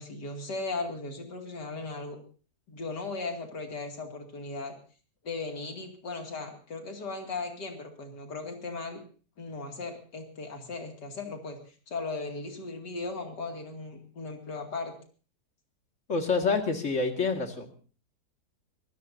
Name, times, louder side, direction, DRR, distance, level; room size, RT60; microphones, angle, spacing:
voice 1, 0.0-2.2 2.7-4.7 5.2-9.0 9.4-11.6 11.9-14.9, left 3 dB, 85° left, 3 dB, 3.1 m, -37 dB
voice 2, 16.1-17.7, left 4 dB, 45° left, 4 dB, 2.3 m, -27 dB
24.0 x 16.0 x 2.7 m, 0.39 s
omnidirectional pair, 1.8 m